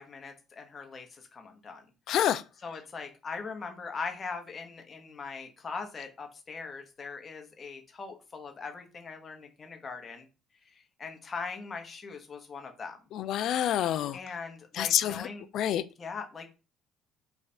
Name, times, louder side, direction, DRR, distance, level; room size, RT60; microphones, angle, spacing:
voice 1, 0.0-1.8 2.6-10.2 10.7-13.0 14.1-15.4 16.0-16.5, left 4 dB, 35° left, 0.9 m, -41 dB
voice 2, 2.1-2.4 13.1-14.2 14.8-15.3 15.5-15.8, left 11 dB, 65° left, 0.3 m, -27 dB
3.3 x 2.4 x 4.2 m
cardioid pair, 90°, 0 cm